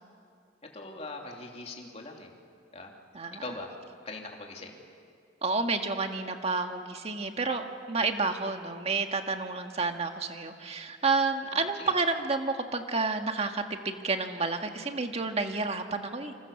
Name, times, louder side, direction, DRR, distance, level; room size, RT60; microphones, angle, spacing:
voice 1, 0.7-2.3 2.7-2.9 3.4-3.7 4.0-4.8 11.5-11.9, left 2 dB, 35° left, 1 dB, 3.2 m, -41 dB
voice 2, 5.4-16.3, right 3 dB, 35° right, 5 dB, 1.8 m, -30 dB
28.5 x 26.5 x 7.2 m, 2.3 s
head